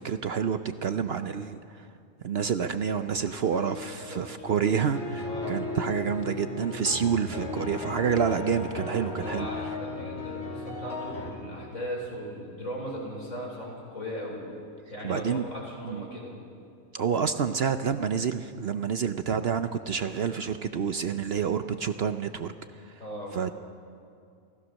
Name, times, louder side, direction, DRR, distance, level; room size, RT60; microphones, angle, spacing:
voice 1, 0.0-1.9 2.2-9.5 15.0-15.5 15.8-16.1 16.9-22.5 22.8-23.0 23.3-23.5, right 7 dB, 55° right, 9 dB, 0.8 m, -28 dB
sound 1, 3.1-11.3, left 3 dB, 50° left, 3.1 m, -36 dB
voice 2, 3.9-4.2 5.2-5.6 9.2-14.4 14.9-16.4 23.0-23.3, equal, 75° left, -2 dB, 5.5 m, -38 dB
27.5 x 16.0 x 6.4 m, 2.4 s
omnidirectional pair, 1.4 m